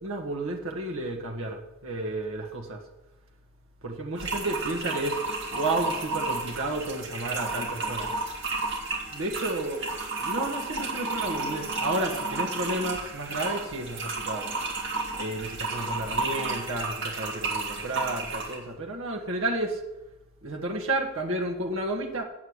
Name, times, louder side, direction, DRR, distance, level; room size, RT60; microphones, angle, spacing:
voice 1, 0.0-2.8 3.8-5.2 5.5-8.1 9.1-9.8 10.2-14.5 15.1-19.8 20.4-22.2, right 2 dB, 75° right, 1 dB, 1.4 m, -31 dB
sound 1, 4.2-18.6, right 3 dB, 60° right, 2.1 m, -32 dB
8.0 x 7.5 x 8.1 m, 0.92 s
head